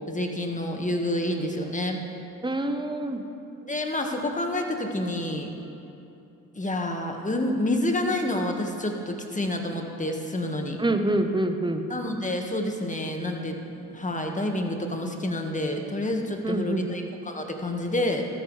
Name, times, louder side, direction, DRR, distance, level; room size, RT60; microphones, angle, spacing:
voice 1, 0.1-2.0 3.7-5.5 6.6-10.8 11.9-13.6 13.9-18.3, left 1 dB, 20° left, 3 dB, 1.8 m, -28 dB
voice 2, 2.4-3.2 10.8-11.8 16.4-16.8, right 1 dB, 10° right, 6 dB, 1.1 m, -26 dB
13.5 x 13.5 x 3.4 m, 2.8 s
supercardioid pair, 55°, 41 cm